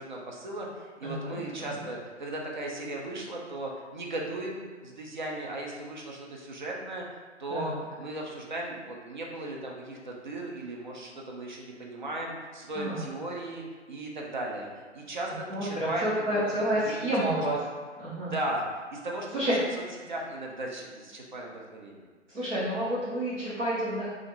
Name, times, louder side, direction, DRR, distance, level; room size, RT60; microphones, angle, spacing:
voice 1, 0.0-7.0 7.4-17.4 18.2-19.6 20.1-22.1, right 1 dB, 40° right, -1 dB, 0.4 m, -37 dB
voice 2, 1.0-1.7 7.5-7.8 12.7-13.0 15.5-17.6 18.0-18.3 19.3-19.5 22.3-24.1, right 1 dB, 80° right, -10 dB, 0.9 m, -29 dB
2.4 x 2.4 x 2.9 m, 1.4 s
figure-of-eight pair, 135°, 37 cm